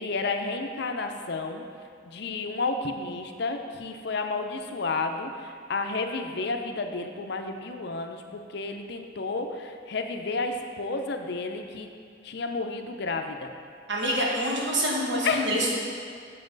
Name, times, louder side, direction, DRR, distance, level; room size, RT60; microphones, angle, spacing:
voice 1, 0.0-1.6 2.1-11.9 12.2-13.5 15.2-15.5, left 3 dB, 55° left, 5 dB, 0.6 m, -31 dB
voice 2, 13.9-15.7, equal, 65° right, -4 dB, 1.5 m, -26 dB
7.5 x 7.0 x 3.9 m, 2.2 s
head